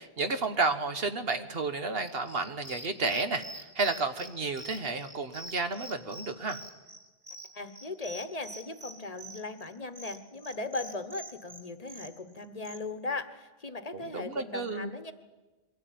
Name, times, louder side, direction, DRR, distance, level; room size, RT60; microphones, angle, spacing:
voice 1, 0.0-6.6 13.9-14.9, right 3 dB, 70° right, 9 dB, 1.4 m, -31 dB
sound 1, 2.0-12.8, right 1 dB, 30° right, 2.3 m, -46 dB
voice 2, 7.5-15.1, left 3 dB, 40° left, 10 dB, 1.1 m, -38 dB
22.5 x 15.5 x 9.3 m, 1.2 s
omnidirectional pair, 1.0 m